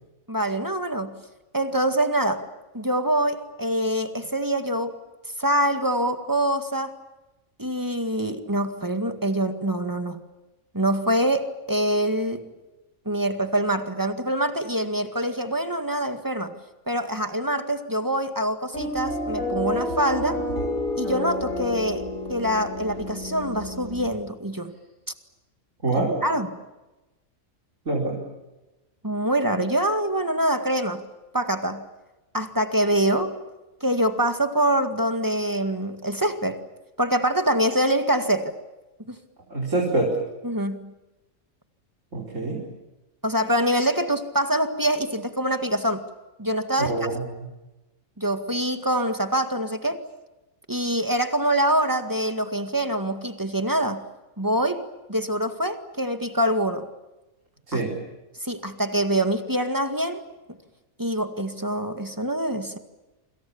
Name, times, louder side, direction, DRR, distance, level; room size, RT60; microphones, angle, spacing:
voice 1, 0.3-1.2 1.5-2.5 2.7-5.0 5.4-6.9 7.6-10.2 10.7-12.5 13.1-16.5 16.9-20.4 21.0-24.7 26.0-26.6 29.0-31.0 31.3-31.8 32.3-33.4 33.8-36.6 37.0-38.5 39.1-39.2 40.4-40.9 43.2-46.0 46.4-47.2 48.2-50.0 50.7-54.0 54.4-54.8 55.1-56.9 57.7-57.8 58.4-60.2 61.0-62.8, right 1 dB, 15° right, 8 dB, 2.0 m, -25 dB
sound 1, 18.7-24.1, left 1 dB, 70° left, 8.1 m, -30 dB
voice 2, 25.8-26.2 27.9-28.2 39.5-40.1 42.1-42.6 46.8-47.5 57.7-58.0, right 2 dB, 60° right, -2 dB, 5.1 m, -25 dB
28.0 x 26.5 x 7.2 m, 1.0 s
omnidirectional pair, 1.4 m